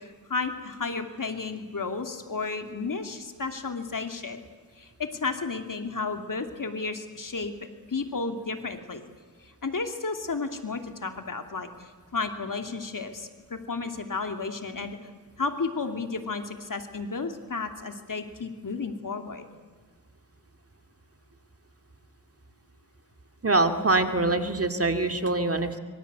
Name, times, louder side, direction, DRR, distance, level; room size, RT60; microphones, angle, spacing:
voice 1, 0.0-4.4 4.8-7.5 7.9-9.0 9.4-15.0 15.4-19.4, left 4 dB, 60° left, 5 dB, 2.9 m, -33 dB
voice 2, 23.4-25.8, right 2 dB, 40° right, 6 dB, 2.4 m, -24 dB
25.0 x 24.0 x 8.2 m, 1.5 s
cardioid pair, 50°, 37 cm